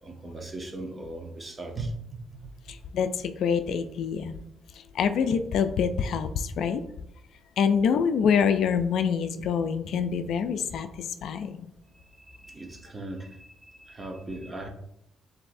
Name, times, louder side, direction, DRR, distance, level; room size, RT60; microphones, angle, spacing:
voice 1, 0.0-2.5 11.9-14.7, right 2 dB, 25° right, 2 dB, 0.9 m, -39 dB
voice 2, 2.7-4.4 4.8-6.8 7.6-11.6, left 7 dB, 75° left, 9 dB, 0.3 m, -26 dB
7.2 x 2.7 x 2.6 m, 0.82 s
cardioid pair, 90°, 0 cm